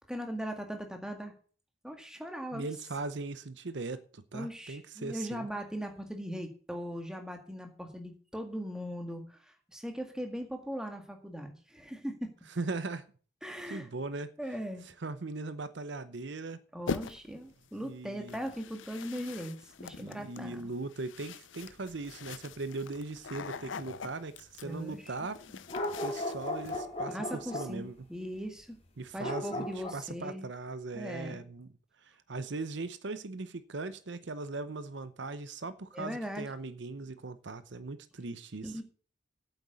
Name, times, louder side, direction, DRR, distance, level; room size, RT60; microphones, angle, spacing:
voice 1, 0.1-1.3 1.8-2.7 4.3-12.3 13.4-13.9 14.4-14.8 16.7-20.7 24.6-25.3 25.5-25.6 27.1-28.8 29.1-30.5 30.9-31.4 35.9-36.5 38.6-38.8, equal, 5° right, 1.9 m, -39 dB
voice 2, 2.5-5.5 12.6-13.1 13.7-14.3 14.8-16.6 17.8-18.4 20.0-25.4 26.0-27.9 29.0-31.7 32.0-38.8, right 3 dB, 65° right, 0.7 m, -39 dB
sound 1, 16.9-17.4 18.3-26.8, left 5 dB, 75° left, 0.6 m, -43 dB
sound 2, 25.7-27.8 29.2-29.9, left 1 dB, 30° left, 2.4 m, -36 dB
8.8 x 8.0 x 8.3 m
head